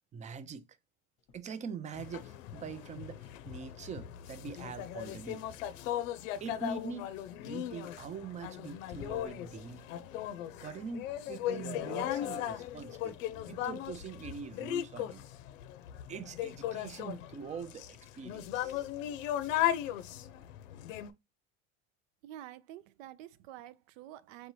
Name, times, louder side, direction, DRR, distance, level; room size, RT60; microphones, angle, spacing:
voice 1, 0.1-0.6 1.3-5.4 6.4-7.1 7.4-9.9 10.6-15.2 16.1-18.9, right 6 dB, 20° right, 0.4 m, -43 dB
sound 1, 1.2-1.9 2.2-6.3 7.9-8.5 8.8-9.6, left 7 dB, 35° left, 0.8 m, -57 dB
sound 2, 1.9-21.1, left 12 dB, 75° left, 0.6 m, -37 dB
voice 2, 22.2-24.5, right 12 dB, 75° right, 0.6 m, -48 dB
4.6 x 2.7 x 3.0 m
hypercardioid pair, 95°, 39 cm